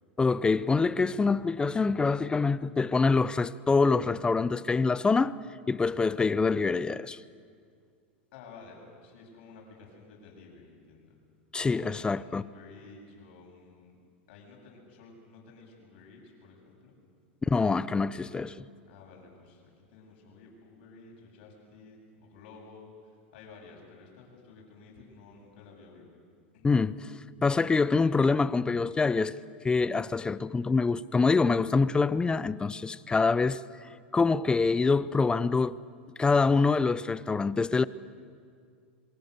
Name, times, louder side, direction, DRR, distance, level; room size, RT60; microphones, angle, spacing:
voice 1, 0.2-5.4 5.7-7.2 11.5-12.4 17.4-18.6 26.6-27.0 27.4-29.4 29.6-35.8 36.2-37.8, left 4 dB, 15° left, 0.6 m, -25 dB
voice 2, 8.3-11.2 11.6-14.0 14.3-16.9 18.8-26.1 26.5-26.7, left 4 dB, 65° left, 7.8 m, -52 dB
26.5 x 23.5 x 6.8 m
hypercardioid pair, 105°, 6 cm